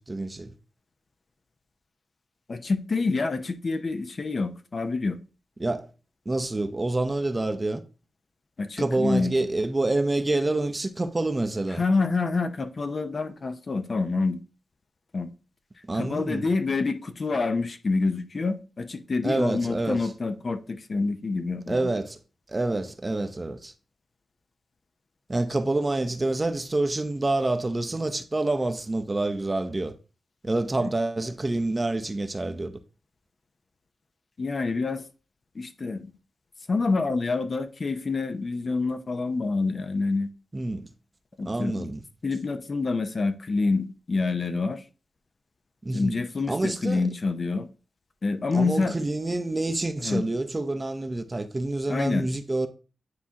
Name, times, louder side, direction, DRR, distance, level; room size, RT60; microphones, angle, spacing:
voice 1, 0.1-0.5 5.6-5.9 6.3-7.8 8.8-11.8 15.8-16.5 19.2-20.1 21.7-22.2 22.5-23.7 25.3-29.9 30.4-32.8 40.5-40.9 41.4-42.0 45.8-46.2 46.5-47.1 48.5-52.7, right 2 dB, 30° right, 0.7 m, -27 dB
voice 2, 2.5-5.2 8.6-9.3 11.8-14.4 15.1-15.3 15.9-21.9 34.4-35.0 35.5-36.1 36.7-40.3 41.4-41.9 42.2-44.8 45.9-47.7 48.2-49.0 50.0-50.2 51.9-52.3, left 3 dB, 50° left, 0.7 m, -27 dB
9.5 x 3.6 x 2.8 m
cardioid pair, 65°, 0 cm